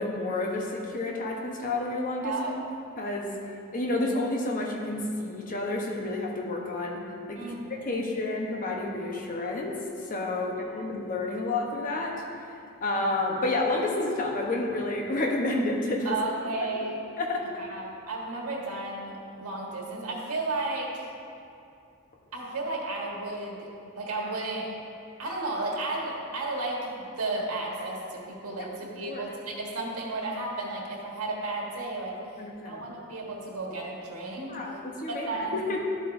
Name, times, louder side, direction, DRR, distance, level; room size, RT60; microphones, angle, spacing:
voice 1, 0.0-2.6 3.0-3.3 3.7-7.0 7.3-7.5 7.9-9.7 10.1-12.1 12.8-16.1 17.2-17.4 29.1-29.2 32.4-32.8 34.5-35.8, left 2 dB, 40° left, -1 dB, 1.0 m, -30 dB
voice 2, 2.2-2.5 7.3-8.2 10.3-10.4 10.9-11.0 16.0-17.0 17.6-21.1 22.3-23.7 23.9-24.7 25.2-26.9 27.2-32.2 32.6-34.5 35.1-35.7, right 2 dB, 85° right, -2 dB, 1.6 m, -33 dB
11.5 x 7.8 x 2.7 m, 2.6 s
head